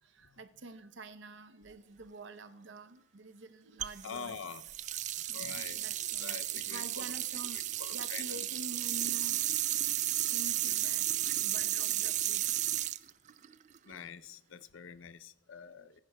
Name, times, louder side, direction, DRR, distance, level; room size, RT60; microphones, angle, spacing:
voice 1, 0.0-4.4 5.2-9.8 10.1-12.5, right 2 dB, 65° right, 0.7 m, -48 dB
sound 1, 3.8-14.0, right 13 dB, 40° right, 0.3 m, -33 dB
voice 2, 4.0-4.6 5.3-5.9 6.2-7.1 7.8-8.2 13.9-16.0, left 7 dB, 80° left, 0.5 m, -45 dB
20.0 x 10.5 x 2.2 m
head